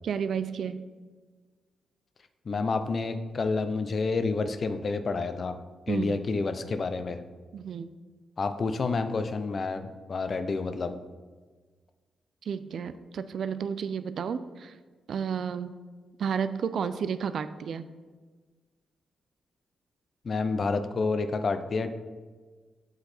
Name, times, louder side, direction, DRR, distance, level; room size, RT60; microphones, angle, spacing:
voice 1, 0.0-0.8 5.9-6.2 7.5-7.9 12.5-14.7 15.1-15.7 16.2-17.8, right 7 dB, 70° right, 12 dB, 0.3 m, -31 dB
voice 2, 2.4-5.6 5.9-7.2 8.4-11.0 20.2-21.9, left 4 dB, 50° left, 9 dB, 0.5 m, -29 dB
7.9 x 4.0 x 4.3 m, 1.4 s
supercardioid pair, 55°, 0 cm